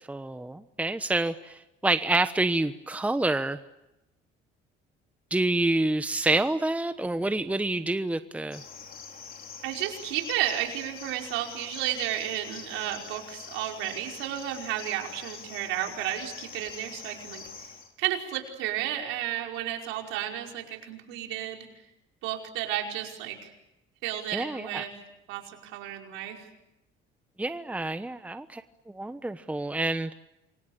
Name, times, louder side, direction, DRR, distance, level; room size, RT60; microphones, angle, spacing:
voice 1, 0.0-3.6 5.3-8.6 24.3-24.9 27.4-30.1, right 2 dB, 5° right, 10 dB, 1.1 m, -28 dB
Cricket, 8.5-17.9, left 6 dB, 45° left, 4.0 m, -44 dB
voice 2, 9.6-17.5 18.0-21.6 22.2-23.5 24.0-24.9 25.3-26.5, right 12 dB, 85° right, 2 dB, 5.2 m, -32 dB
28.5 x 24.0 x 8.6 m, 0.92 s
cardioid pair, 95°, 20 cm